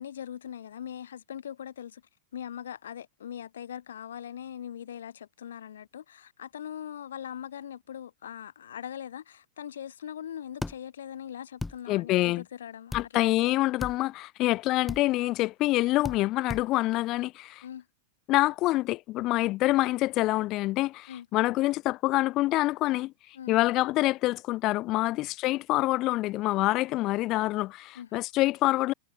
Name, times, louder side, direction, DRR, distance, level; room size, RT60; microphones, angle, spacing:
voice 1, 0.0-2.0 2.3-13.6 17.6-17.8 21.1-21.3 23.3-23.6 25.1-25.2 27.9-28.2, left 9 dB, 65° left, 7.5 m, -41 dB
sound 1, 10.6-10.7 11.6-11.8 12.9-13.1 13.8-14.0 14.9-15.0 16.0-16.2 16.5-16.6, left 3 dB, 10° left, 0.9 m, -35 dB
voice 2, 11.9-12.4 12.9-17.6 18.3-23.1 23.5-28.9, left 18 dB, 40° left, 1.3 m, -26 dB
figure-of-eight pair, 90°, 0 cm